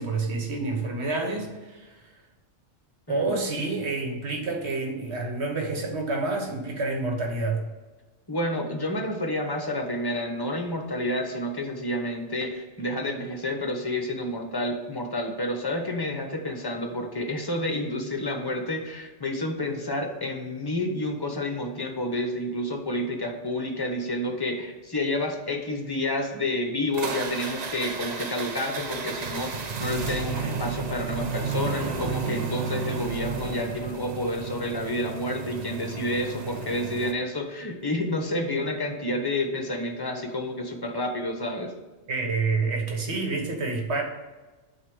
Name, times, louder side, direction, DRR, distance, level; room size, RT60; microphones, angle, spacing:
voice 1, 0.0-2.0 3.1-7.6 42.1-44.0, right 3 dB, 70° right, 2 dB, 1.4 m, -28 dB
voice 2, 3.1-3.4 8.3-41.7, left 1 dB, 20° left, 3 dB, 0.8 m, -29 dB
sound 1, 26.9-37.1, right 5 dB, 45° right, 0.6 m, -32 dB
7.9 x 2.8 x 6.1 m, 1.2 s
omnidirectional pair, 1.2 m